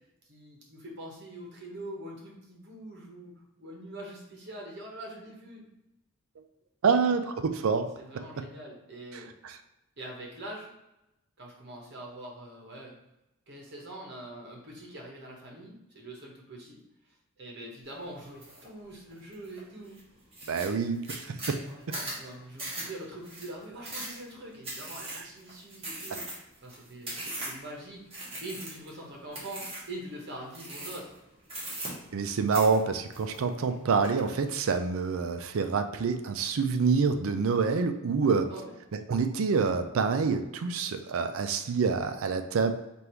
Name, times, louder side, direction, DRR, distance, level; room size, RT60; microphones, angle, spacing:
voice 1, 0.3-5.7 6.9-7.2 8.0-9.3 10.0-10.7 11.4-12.9 13.5-16.8 17.4-20.0 21.6-26.3 26.6-28.0 28.4-31.1 38.5-38.7, right 1 dB, 50° right, -1 dB, 1.1 m, -44 dB
voice 2, 6.8-7.9 9.4-9.5 20.5-21.4 32.1-38.5 38.9-42.7, right 5 dB, 70° right, 8 dB, 0.4 m, -27 dB
sound 1, 18.4-18.7 19.1-19.6 20.0-20.1 20.3-27.7 28.1-29.0 29.3-29.9 30.5-31.2 31.5-32.3 32.5-33.7 34.0-34.6, right 1 dB, 25° right, 1.3 m, -39 dB
3.5 x 2.6 x 4.4 m, 0.91 s
head